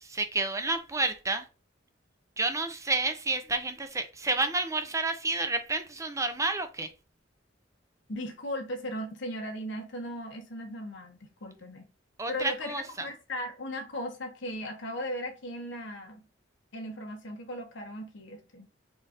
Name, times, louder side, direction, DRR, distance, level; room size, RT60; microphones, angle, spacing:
voice 1, 0.0-1.5 2.4-6.9 12.2-13.1, right 3 dB, 15° right, 0.7 m, -30 dB
voice 2, 8.1-11.9 12.3-12.7 13.0-16.3 16.7-18.7, left 1 dB, 70° left, 1.1 m, -37 dB
4.2 x 2.6 x 4.8 m
head